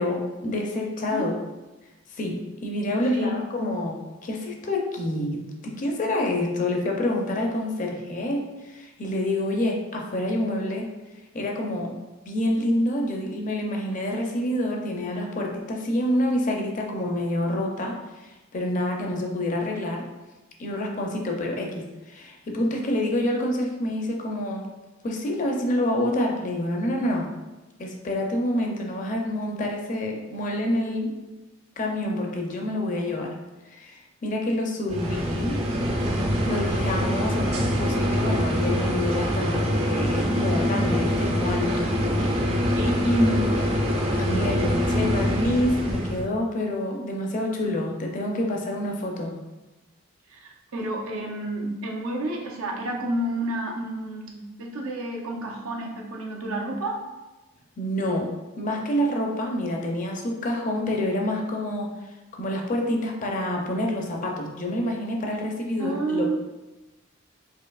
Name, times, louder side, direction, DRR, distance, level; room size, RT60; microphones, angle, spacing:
voice 1, 0.0-1.3 2.1-10.9 11.3-11.9 12.3-20.0 20.6-24.7 25.0-27.3 27.8-31.1 31.8-33.4 33.7-35.6 36.5-42.6 43.1-43.5 44.2-49.4 57.8-58.3 58.6-61.9 62.4-66.4, left 1 dB, 35° left, 1 dB, 0.5 m, -27 dB
sound 1, 34.9-46.2, equal, 30° right, 0.4 m, -24 dB
voice 2, 50.3-57.1 65.8-66.4, right 1 dB, 80° right, 0 dB, 0.6 m, -30 dB
4.4 x 2.7 x 2.3 m, 1.1 s
head